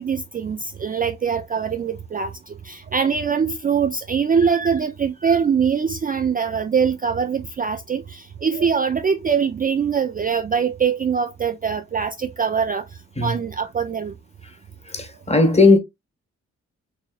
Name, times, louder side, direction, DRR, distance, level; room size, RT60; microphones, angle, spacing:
voice 1, 0.0-12.9 13.2-14.1, right 6 dB, 30° right, 0.3 m, -23 dB
voice 2, 14.9-15.8, left 3 dB, 20° left, 1.1 m, -16 dB
4.1 x 2.6 x 2.3 m
cardioid pair, 65°, 30 cm